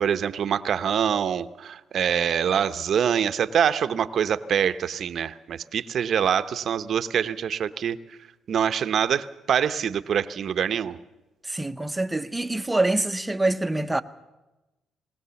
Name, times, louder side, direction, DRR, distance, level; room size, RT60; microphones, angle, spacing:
voice 1, 0.0-8.0 8.5-11.0, right 8 dB, 60° right, 0.8 m, -25 dB
voice 2, 11.4-14.0, right 2 dB, 10° right, 0.9 m, -25 dB
19.5 x 19.0 x 7.0 m
cardioid pair, 90°, 0 cm